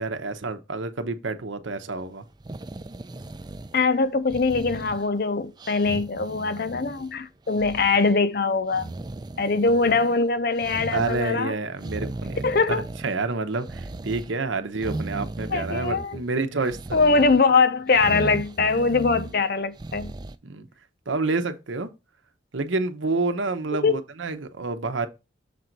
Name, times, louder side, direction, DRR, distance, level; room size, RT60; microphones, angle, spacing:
voice 1, 0.0-2.2 10.9-17.3 20.4-20.7 21.1-21.9 22.5-25.1, right 3 dB, 80° right, 0.9 m, -29 dB
sound 1, 2.3-3.9 4.3-5.2 5.6-7.1 7.5-8.1 8.7-10.2 10.6-11.3 11.8-13.3 13.6-14.3 14.8-16.3 16.6-17.4 17.9-19.4 19.8-20.4, right 2 dB, 20° right, 0.4 m, -36 dB
voice 2, 3.7-8.9 9.4-11.5 12.4-12.9 15.5-16.2 16.9-20.1 23.8-24.0, left 4 dB, 50° left, 0.6 m, -22 dB
6.9 x 3.9 x 4.5 m
head